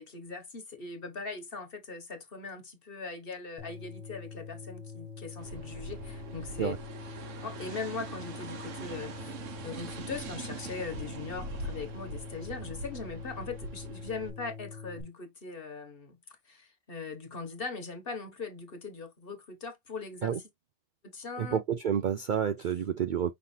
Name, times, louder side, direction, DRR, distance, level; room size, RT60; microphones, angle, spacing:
voice 1, 0.0-6.7 7.4-9.4 9.6-16.2 16.5-20.3 21.0-21.6, left 4 dB, 50° left, 1.6 m, -40 dB
sound 1, 3.6-15.0, left 6 dB, ahead, 1.6 m, -45 dB
sound 2, 5.4-14.3, right 3 dB, 80° right, 1.3 m, -42 dB
voice 2, 21.4-23.3, right 8 dB, 60° right, 0.5 m, -29 dB
5.6 x 3.3 x 2.7 m
omnidirectional pair, 1.3 m